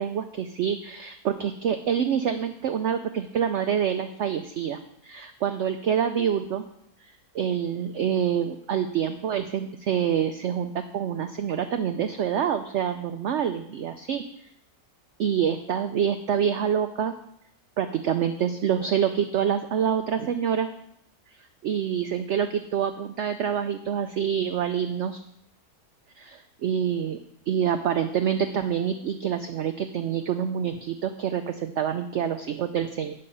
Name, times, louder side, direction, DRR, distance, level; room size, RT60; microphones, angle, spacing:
voice 1, 0.0-6.6 7.3-14.2 15.2-17.1 17.8-20.7 21.6-25.2 26.2-27.2 27.5-33.1, right 8 dB, 70° right, 7 dB, 0.7 m, -26 dB
8.4 x 6.6 x 5.3 m, 0.74 s
omnidirectional pair, 1.7 m